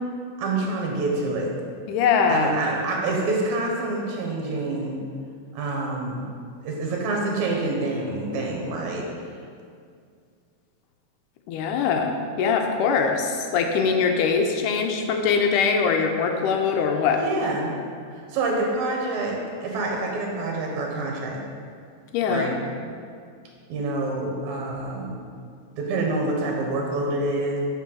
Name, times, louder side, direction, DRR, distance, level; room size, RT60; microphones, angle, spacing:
voice 1, 0.4-1.5 2.3-5.0 5.5-6.3 6.6-9.1 17.2-17.8 18.1-21.5 22.3-22.6 23.7-25.2 25.8-27.6, right 2 dB, 65° right, -1 dB, 2.5 m, -27 dB
voice 2, 1.9-2.5 11.5-17.2 22.1-22.6, left 5 dB, 90° left, 4 dB, 2.2 m, -22 dB
7.5 x 5.5 x 5.5 m, 2.3 s
omnidirectional pair, 3.7 m